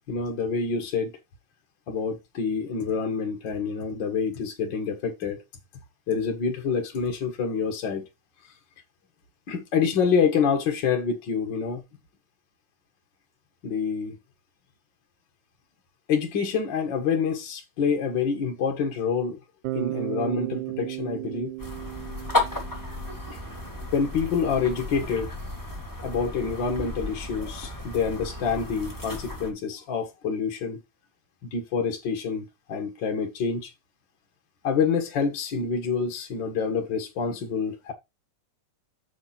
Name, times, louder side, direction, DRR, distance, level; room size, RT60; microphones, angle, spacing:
voice 1, 0.1-1.1 1.9-5.4 6.1-8.0 9.5-11.8 13.6-14.2 16.1-19.4 19.7-21.5 23.3-23.4 23.9-25.3 26.0-30.8 31.4-33.7 34.6-37.9, left 6 dB, 45° left, 1.8 m, -27 dB
Bass guitar, 19.6-23.7, right 18 dB, 80° right, 2.1 m, -35 dB
sound 1, 21.6-29.5, left 2 dB, 10° left, 0.9 m, -33 dB
7.0 x 4.8 x 5.9 m
omnidirectional pair, 3.7 m